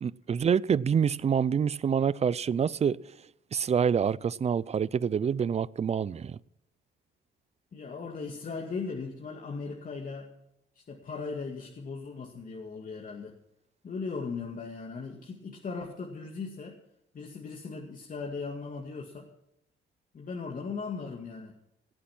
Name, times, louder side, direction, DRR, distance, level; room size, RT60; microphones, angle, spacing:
voice 1, 0.0-3.0 3.5-6.4, right 7 dB, 35° right, 0.5 m, -26 dB
voice 2, 7.7-10.3 10.9-13.3 13.8-16.8 17.1-19.3 20.1-21.5, left 4 dB, 45° left, 2.2 m, -38 dB
17.5 x 8.4 x 6.1 m
cardioid pair, 90°, 20 cm